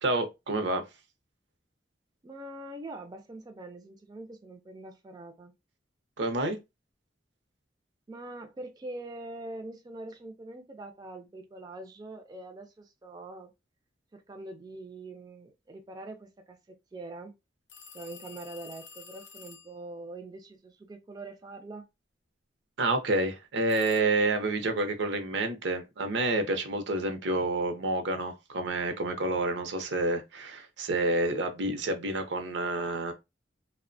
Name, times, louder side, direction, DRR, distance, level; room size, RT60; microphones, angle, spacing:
voice 1, 0.0-0.9 6.2-6.6 22.8-33.1, right 2 dB, 75° right, 0.6 m, -29 dB
voice 2, 2.2-5.5 8.1-13.5 14.1-17.3 17.9-21.9, right 2 dB, 20° right, 0.3 m, -43 dB
sound 1, 17.7-19.8 23.7-24.0, left 6 dB, 75° left, 0.5 m, -49 dB
2.8 x 2.1 x 2.5 m
head